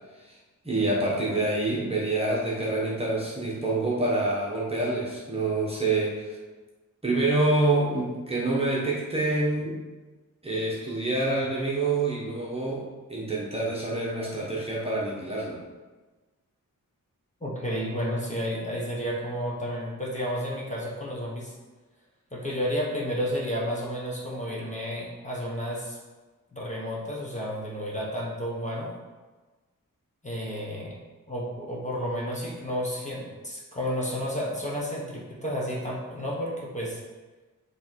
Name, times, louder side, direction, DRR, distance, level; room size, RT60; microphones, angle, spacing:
voice 1, 0.6-6.4 7.0-9.8 10.4-12.8 13.1-15.6, right 2 dB, 15° right, -5 dB, 1.2 m, -27 dB
voice 2, 17.4-21.5 22.3-26.0 26.5-28.9 30.2-31.0 31.3-37.0, equal, 20° left, -4 dB, 1.3 m, -31 dB
8.3 x 3.3 x 4.6 m, 1.3 s
wide cardioid pair, 155°, 34 cm